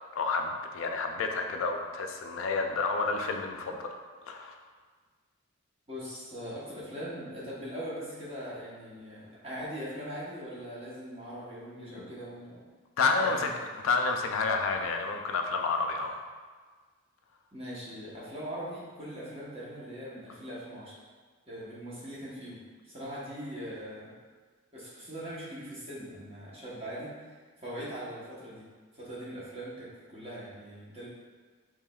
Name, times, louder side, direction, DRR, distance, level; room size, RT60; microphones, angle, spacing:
voice 1, 0.1-3.9 4.3-4.6 12.0-12.1 13.0-13.5 13.8-16.2, left 4 dB, 70° left, 4 dB, 0.4 m, -29 dB
voice 2, 5.9-12.6 13.2-13.5 17.5-20.9 21.5-24.1 24.7-27.4 27.6-28.7 28.9-31.1, equal, 25° right, -8 dB, 0.9 m, -41 dB
4.8 x 3.0 x 2.3 m, 1.5 s
head